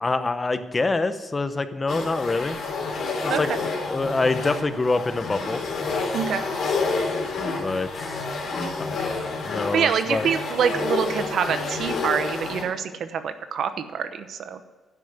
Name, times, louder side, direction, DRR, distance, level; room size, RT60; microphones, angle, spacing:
voice 1, 0.0-2.6 3.2-3.5 3.9-5.6 7.6-8.2 8.8-10.3, left 3 dB, 25° left, 11 dB, 0.8 m, -26 dB
sound 1, 1.9-12.6, left 3 dB, 65° left, 3.4 m, -29 dB
voice 2, 6.1-6.4 9.7-14.6, right 7 dB, 70° right, 10 dB, 0.9 m, -25 dB
10.5 x 6.2 x 8.0 m, 1.3 s
cardioid pair, 90°, 0 cm